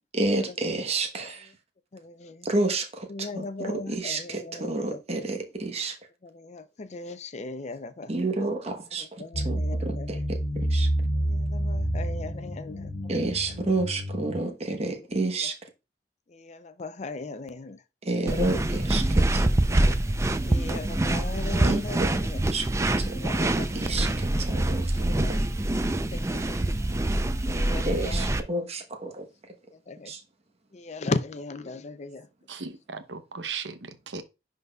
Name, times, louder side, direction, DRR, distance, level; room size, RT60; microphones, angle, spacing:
voice 1, 0.1-1.4 2.4-6.0 8.1-9.0 9.4-10.4 10.7-10.9 13.1-15.5 18.1-19.4 21.6-21.8 22.5-23.1 23.7-25.3 27.8-29.2 30.1-30.2, right 2 dB, 35° right, 1.0 m, -30 dB
voice 2, 1.9-2.5 3.1-5.0 6.2-8.1 9.0-10.1 11.1-12.9 15.4-15.5 16.3-17.8 18.3-18.6 19.7-20.0 20.4-22.4 23.0-24.1 24.8-25.4 25.8-26.8 27.4-28.3 29.7-30.1 30.7-32.3, left 3 dB, 40° left, 0.5 m, -38 dB
sound 1, 9.3-14.4, right 1 dB, 80° left, 1.1 m, -29 dB
sound 2, 18.3-28.4, right 1 dB, 15° right, 0.4 m, -25 dB
voice 3, 32.5-34.2, right 5 dB, 80° right, 0.8 m, -37 dB
10.5 x 3.9 x 2.3 m
head